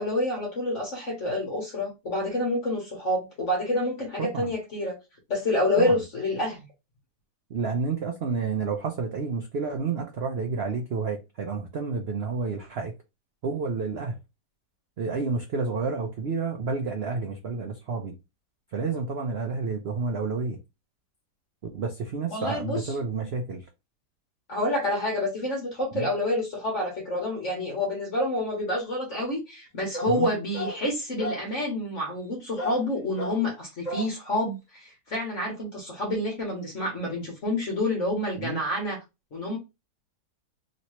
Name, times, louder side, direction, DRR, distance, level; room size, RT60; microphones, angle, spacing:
voice 1, 0.0-5.0 5.3-6.7 22.3-22.9 24.5-39.0 39.3-39.6, left 1 dB, 50° left, 1.3 m, -28 dB
voice 2, 4.2-4.5 5.8-6.0 7.5-12.9 13.4-14.2 15.0-18.1 18.7-20.6 21.7-23.6 25.9-26.1 30.1-30.3 38.4-38.6, right 4 dB, 80° right, 0.5 m, -30 dB
sound 1, 29.9-30.2 30.5-30.8 31.2-31.5 32.6-32.9 33.2-33.4 33.8-34.1, left 1 dB, 25° left, 1.3 m, -33 dB
3.1 x 2.9 x 3.0 m
omnidirectional pair, 1.8 m